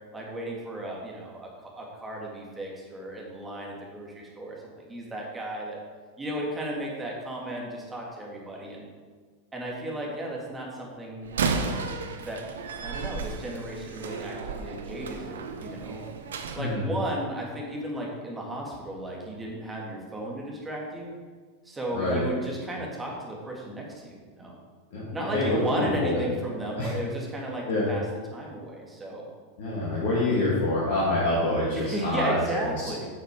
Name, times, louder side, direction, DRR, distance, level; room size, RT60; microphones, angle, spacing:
voice 1, 0.1-5.8 6.2-8.9 9.5-11.3 12.2-12.4 12.8-16.0 16.5-21.1 21.6-24.5 25.1-28.0 28.3-29.3 31.7-33.1, right 1 dB, 15° right, -2 dB, 2.5 m, -34 dB
Slam, 11.2-16.6, right 4 dB, 70° right, 0.8 m, -33 dB
voice 2, 21.9-22.2 24.9-26.2 26.8-26.9 27.7-27.9 29.6-32.4, left 2 dB, 60° left, -7 dB, 2.6 m, -26 dB
10.0 x 6.6 x 4.9 m, 1.5 s
figure-of-eight pair, 90°, 0 cm